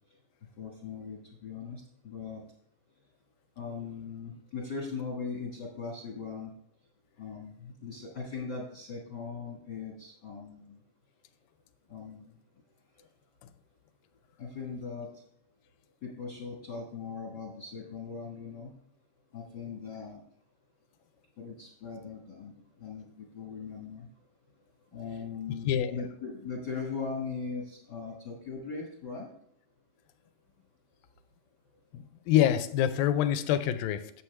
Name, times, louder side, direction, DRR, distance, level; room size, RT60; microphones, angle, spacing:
voice 1, 0.6-2.4 3.6-6.5 7.2-10.8 11.9-12.3 14.4-15.1 16.0-18.7 19.3-20.2 21.4-22.5 22.8-24.1 24.9-29.3, left 5 dB, 60° left, -2 dB, 1.1 m, -39 dB
voice 2, 31.9-34.1, left 11 dB, 85° left, 11 dB, 2.2 m, -26 dB
9.6 x 7.5 x 3.2 m, 0.69 s
omnidirectional pair, 4.1 m